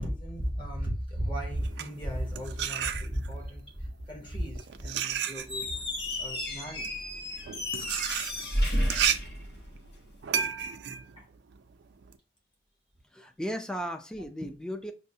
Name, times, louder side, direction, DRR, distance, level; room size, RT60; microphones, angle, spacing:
voice 1, 0.0-5.9 6.2-6.9 11.2-11.3, equal, 30° left, 0.9 m, -35 dB
sound 1, 1.5-3.5 4.3-12.2, right 8 dB, 75° right, 0.3 m, -33 dB
Squeak, 5.4-10.1, left 1 dB, 60° left, 1.1 m, -32 dB
voice 2, 13.1-14.9, equal, 5° left, 0.3 m, -35 dB
5.5 x 2.0 x 2.7 m
head